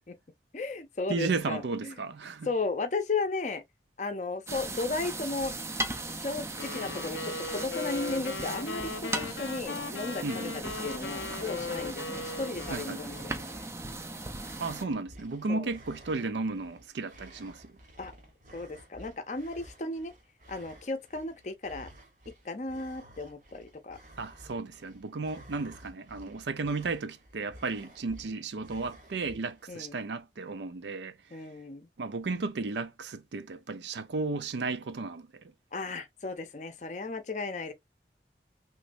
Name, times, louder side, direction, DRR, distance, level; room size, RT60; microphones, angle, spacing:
voice 1, 0.5-2.0 2.4-3.6 4.0-5.5 6.1-13.3 15.5-15.7 18.0-18.1 18.5-20.1 20.5-21.9 22.4-24.0 29.7-30.0 31.3-31.9 35.7-37.7, left 3 dB, 40° left, 0.5 m, -35 dB
voice 2, 1.1-2.5 10.2-10.6 12.7-13.2 14.6-17.8 24.2-31.4 32.0-35.3, right 3 dB, 85° right, 0.5 m, -34 dB
sound 1, 4.5-14.8, right 2 dB, 15° right, 0.4 m, -38 dB
sound 2, 6.6-13.5, left 4 dB, 90° left, 0.5 m, -38 dB
sound 3, 10.5-29.8, right 1 dB, 45° right, 1.0 m, -53 dB
3.1 x 3.1 x 2.5 m
head